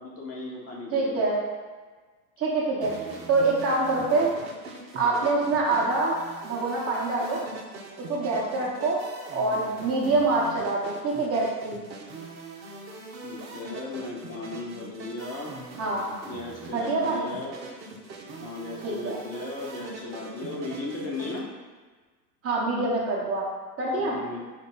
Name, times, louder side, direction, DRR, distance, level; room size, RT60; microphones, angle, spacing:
voice 1, 0.0-1.2 5.0-5.3 13.2-15.5 16.2-17.6 18.4-21.4 24.0-24.4, left 3 dB, 30° left, -4 dB, 0.9 m, -36 dB
voice 2, 0.9-1.4 2.4-4.3 4.9-6.1 6.4-7.4 8.1-9.0 9.3-11.8 15.8-16.0 16.7-17.3 18.8-19.2 22.4-23.5 23.8-24.2, right 3 dB, 30° right, -4 dB, 0.9 m, -25 dB
sound 1, 2.8-21.4, right 3 dB, 85° right, 0.8 m, -42 dB
4.6 x 2.2 x 3.8 m, 1.4 s
hypercardioid pair, 85°, 50 cm